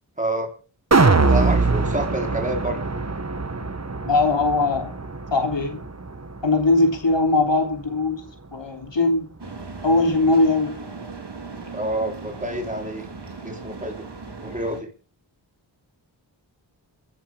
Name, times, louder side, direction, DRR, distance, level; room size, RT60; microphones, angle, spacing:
voice 1, 0.2-0.5 1.3-2.8 11.7-13.1 13.4-14.0 14.4-14.9, right 1 dB, 15° right, 4.0 m, -28 dB
sound 1, 0.9-7.1 7.5-7.6, right 3 dB, 35° right, 1.5 m, -23 dB
voice 2, 4.1-4.9 5.3-5.8 6.4-8.2 8.5-9.3 9.8-10.8, left 2 dB, 70° left, 3.5 m, -20 dB
sound 2, 9.4-14.8, right 4 dB, 60° right, 3.1 m, -37 dB
28.0 x 11.0 x 3.6 m
cardioid pair, 40°, 46 cm